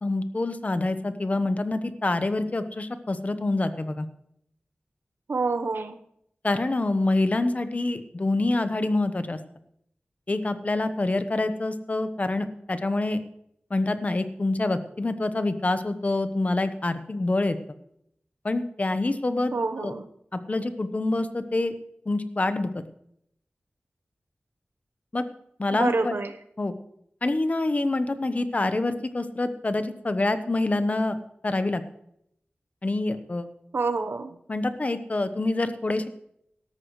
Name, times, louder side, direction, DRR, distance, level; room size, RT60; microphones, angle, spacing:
voice 1, 0.0-4.1 6.4-9.4 10.3-13.2 13.7-17.6 18.4-19.5 19.8-19.9 20.3-21.7 22.1-22.8 25.1-25.2 25.6-26.1 26.6-26.7 27.2-31.2 31.4-31.8 32.8-33.5 34.5-36.1, left 2 dB, 40° left, 10 dB, 1.0 m, -26 dB
voice 2, 5.3-6.0 19.5-20.1 25.7-26.4 33.7-34.4, right 3 dB, 80° right, 8 dB, 1.0 m, -27 dB
17.5 x 13.0 x 3.2 m, 0.73 s
wide cardioid pair, 85°, 4 cm